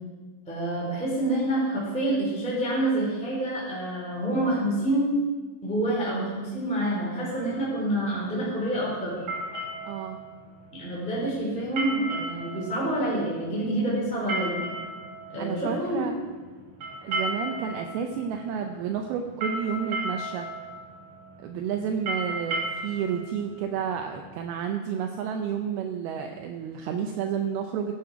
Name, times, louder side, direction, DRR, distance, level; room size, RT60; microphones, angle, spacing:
voice 1, 0.4-5.1 5.6-9.1 10.8-14.6 15.3-16.0, right 1 dB, ahead, -7 dB, 3.1 m, -27 dB
sound 1, 7.3-24.5, right 2 dB, 50° right, 3.9 m, -36 dB
voice 2, 9.8-10.2 15.4-16.1 17.0-20.5 21.4-27.9, right 7 dB, 80° right, 4 dB, 2.4 m, -31 dB
16.0 x 7.9 x 4.7 m, 1.4 s
omnidirectional pair, 4.7 m